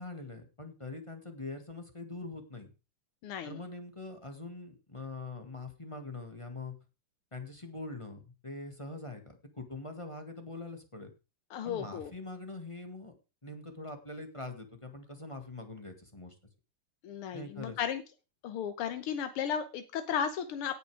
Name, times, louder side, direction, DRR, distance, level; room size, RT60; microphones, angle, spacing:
voice 1, 0.0-2.7 3.4-6.7 7.3-11.1 11.6-13.1 13.4-16.3 17.3-17.8, left 2 dB, 15° left, 5 dB, 1.6 m, -43 dB
voice 2, 3.2-3.6 11.5-12.1 17.0-18.0 18.4-20.8, left 8 dB, 90° left, 9 dB, 1.9 m, -34 dB
17.0 x 6.7 x 4.8 m, 0.31 s
omnidirectional pair, 2.4 m